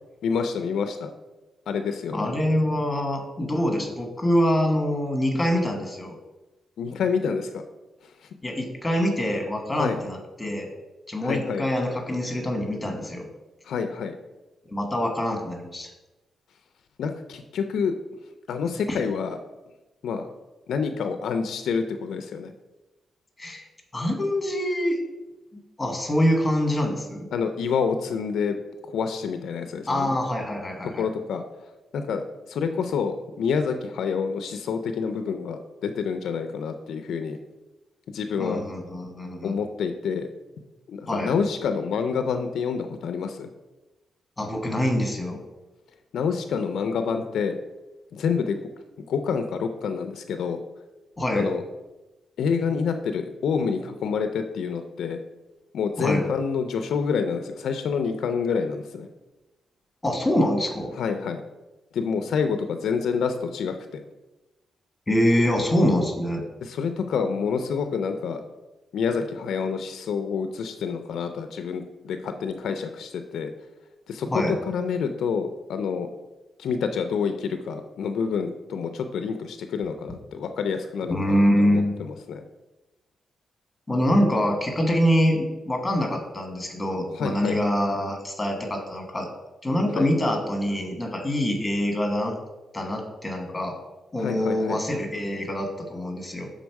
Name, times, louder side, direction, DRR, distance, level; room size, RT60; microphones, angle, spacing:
voice 1, 0.2-1.1 1.7-2.3 6.8-7.6 8.0-8.3 9.8-10.0 11.2-11.6 13.6-14.1 17.0-17.9 18.5-19.4 20.0-20.3 20.7-22.5 27.3-28.6 28.9-30.1 31.0-31.4 31.9-37.4 38.1-38.6 39.4-40.3 40.9-43.5 46.1-47.6 48.1-48.6 49.0-50.6 51.3-51.6 52.4-55.2 55.7-59.1 60.9-61.4 61.9-64.0 66.6-68.4 68.9-73.5 74.1-76.1 76.6-82.4 87.1-87.6 89.9-90.1 94.2-94.8, left 6 dB, 80° left, 7 dB, 0.4 m, -28 dB
voice 2, 2.1-6.1 8.4-10.7 11.1-13.3 14.7-15.9 18.9-19.0 23.4-23.6 23.9-25.0 25.5-27.3 29.9-31.0 38.4-39.6 41.1-41.3 44.4-45.4 51.2-51.5 56.0-56.2 60.0-60.9 65.1-66.4 74.3-74.6 81.1-81.9 83.9-89.3 89.6-92.3 92.7-93.7 94.1-96.5, equal, 10° left, 2 dB, 1.3 m, -25 dB
6.2 x 3.9 x 4.6 m, 1.1 s
cardioid pair, 125°, 0 cm